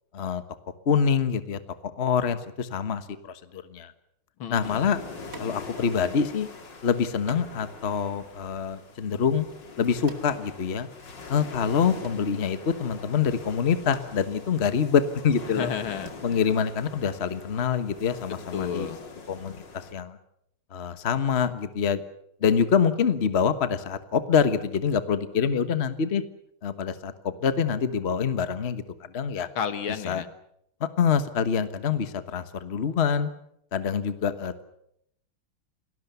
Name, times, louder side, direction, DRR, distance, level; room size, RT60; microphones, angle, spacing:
voice 1, 0.8-3.9 4.5-5.0 5.4-6.5 6.8-9.5 9.8-10.9 11.3-15.7 16.2-18.9 19.3-20.2 20.7-22.0 22.4-26.2 26.6-29.5 30.0-30.2 30.8-33.3 33.7-34.6, left 6 dB, 35° left, 11 dB, 1.4 m, -25 dB
voice 2, 4.4-4.8 15.5-16.4 18.5-19.0 29.6-30.3, left 7 dB, 75° left, 11 dB, 2.3 m, -32 dB
sound 1, 4.6-19.9, left 4 dB, 60° left, 3.2 m, -43 dB
sound 2, 5.3-5.9 6.2-6.3 7.3-11.2 11.5-12.8 13.4-13.5 13.8-16.1, right 2 dB, 40° right, 2.7 m, -47 dB
29.0 x 19.0 x 6.9 m, 0.75 s
omnidirectional pair, 2.3 m